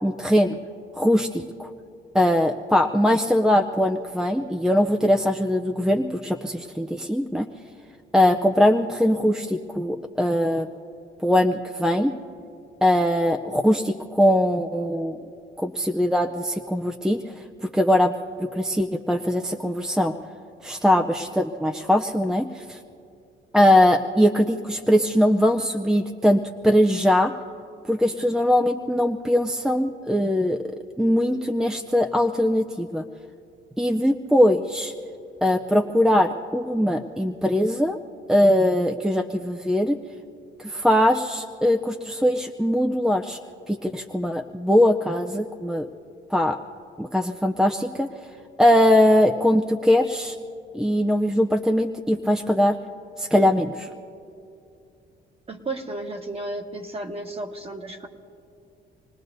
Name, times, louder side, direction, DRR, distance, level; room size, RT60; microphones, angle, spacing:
voice 1, 0.0-0.6 0.9-1.7 2.1-7.5 8.1-10.7 11.2-12.1 12.8-15.2 15.6-17.2 17.7-20.1 20.6-22.8 23.5-27.3 27.9-30.6 31.0-33.0 33.8-34.9 35.4-38.0 38.3-40.0 40.6-43.4 43.7-45.9 46.3-46.6 47.0-48.1 48.6-50.4 50.7-52.8 53.2-53.9, left 1 dB, 5° right, 5 dB, 0.5 m, -21 dB
voice 2, 55.5-58.1, right 2 dB, 30° right, 3 dB, 1.5 m, -33 dB
27.5 x 19.0 x 2.7 m, 2.5 s
cardioid pair, 90°, 20 cm